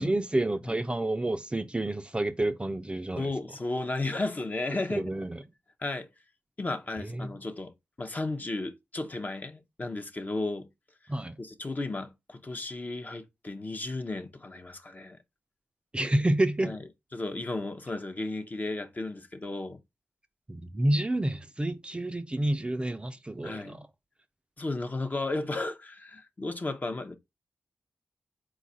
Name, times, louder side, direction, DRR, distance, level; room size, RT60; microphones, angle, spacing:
voice 1, 0.0-3.3 4.7-5.4 7.0-7.3 11.1-11.3 15.9-16.7 20.5-23.9, right 1 dB, 20° right, 0.4 m, -29 dB
voice 2, 3.2-5.0 5.8-6.1 6.6-10.7 11.0-11.1 11.4-15.2 16.6-16.8 17.1-19.8 23.4-23.8 24.6-27.2, left 2 dB, 35° left, 0.7 m, -34 dB
4.1 x 2.4 x 3.9 m
cardioid pair, 55°, 5 cm